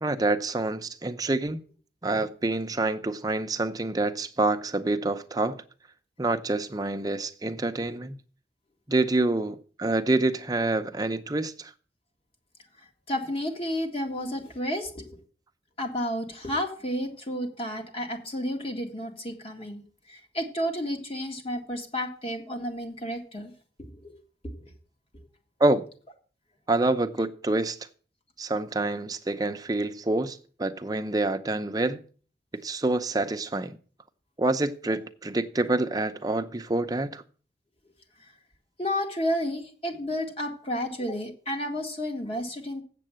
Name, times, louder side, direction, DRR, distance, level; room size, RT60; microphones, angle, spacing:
voice 1, 0.0-1.6 2.0-5.6 6.2-8.2 8.9-11.7 25.6-25.9 26.7-27.8 28.4-32.0 32.6-33.8 34.4-37.2, right 2 dB, 20° right, 0.6 m, -27 dB
voice 2, 13.1-15.2 15.8-19.8 20.1-23.5 23.9-24.2 24.4-24.5 38.8-42.8, equal, 35° left, 1.9 m, -31 dB
7.6 x 7.6 x 7.5 m
head